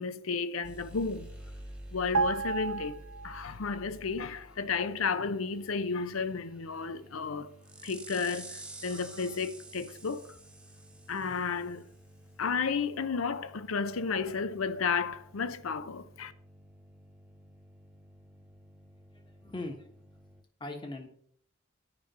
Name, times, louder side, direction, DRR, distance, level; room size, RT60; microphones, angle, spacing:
voice 1, 0.0-1.3 1.9-7.5 7.8-10.4 11.1-11.8 12.4-16.3, left 5 dB, 90° left, 0.6 m, -33 dB
sound 1, 0.6-20.4, right 1 dB, 5° right, 1.0 m, -51 dB
sound 2, 2.1-3.8 4.0-4.3, right 4 dB, 75° right, 0.6 m, -32 dB
voice 2, 19.1-19.9 20.6-21.1, left 2 dB, 25° left, 1.3 m, -40 dB
9.8 x 5.3 x 6.0 m
head